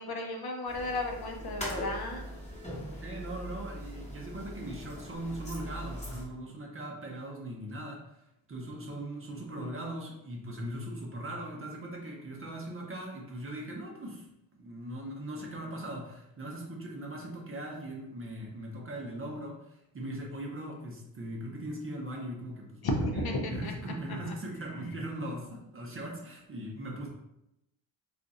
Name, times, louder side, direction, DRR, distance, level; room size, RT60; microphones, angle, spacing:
voice 1, 0.0-2.3 22.8-23.7 24.1-24.3, left 1 dB, 50° left, 2 dB, 0.7 m, -33 dB
sound 1, 0.7-6.2, equal, 15° left, 1.0 m, -41 dB
voice 2, 3.0-8.0 8.5-14.3 14.5-22.8 23.5-27.1, right 1 dB, 30° right, 0 dB, 0.7 m, -39 dB
2.5 x 2.4 x 3.9 m, 0.87 s
cardioid pair, 100°, 47 cm